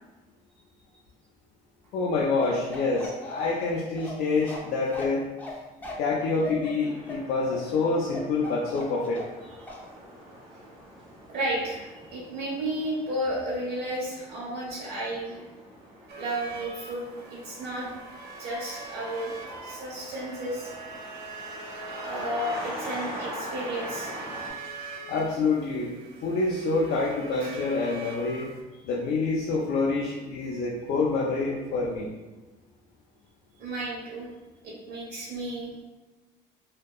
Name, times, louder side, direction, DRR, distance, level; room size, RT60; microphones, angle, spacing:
voice 1, 1.9-5.2 6.0-9.2 25.1-25.9 26.2-32.1, left 3 dB, 60° left, -3 dB, 0.4 m, -27 dB
Bark, 2.4-9.4 9.7-9.9, left 2 dB, 10° left, 0.5 m, -39 dB
sound 1, 6.8-24.5, right 1 dB, 35° right, 1.0 m, -43 dB
voice 2, 11.3-15.5 16.2-17.0 17.3-17.9 18.4-19.3 19.6-20.7 22.0-24.1 27.4-27.5 33.6-34.3 34.6-35.7, right 1 dB, 70° right, -6 dB, 1.1 m, -33 dB
sound 2, 16.1-28.6, right 2 dB, 85° right, 0.5 m, -43 dB
2.7 x 2.2 x 2.3 m, 1.1 s
cardioid pair, 110°, 17 cm